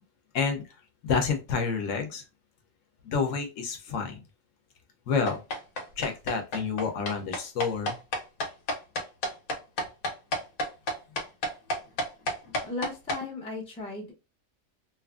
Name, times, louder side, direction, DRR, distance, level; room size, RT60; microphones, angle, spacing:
voice 1, 1.0-2.2 3.0-4.2 5.1-5.4 6.0-8.0, left 5 dB, 70° left, 4 dB, 0.9 m, -29 dB
sound 1, 5.3-13.2, left 1 dB, 85° left, 1.2 m, -30 dB
voice 2, 12.6-14.1, left 2 dB, 10° left, -1 dB, 0.4 m, -36 dB
2.9 x 2.4 x 2.3 m, 0.28 s
omnidirectional pair, 1.5 m